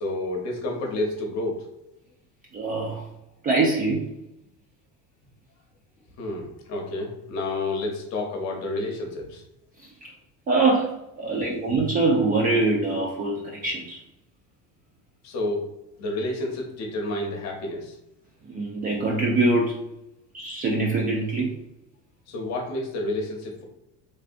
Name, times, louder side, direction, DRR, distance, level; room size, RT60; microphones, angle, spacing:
voice 1, 0.0-1.7 6.2-9.4 11.2-11.6 15.2-15.7 16.0-18.0 22.3-23.6, left 2 dB, 45° left, 1 dB, 0.8 m, -30 dB
voice 2, 2.5-3.0 3.4-4.1 10.0-10.1 10.5-14.0 18.5-19.8 20.3-21.5, right 3 dB, 25° right, -2 dB, 0.3 m, -23 dB
3.3 x 2.6 x 2.5 m, 0.84 s
cardioid pair, 140°, 37 cm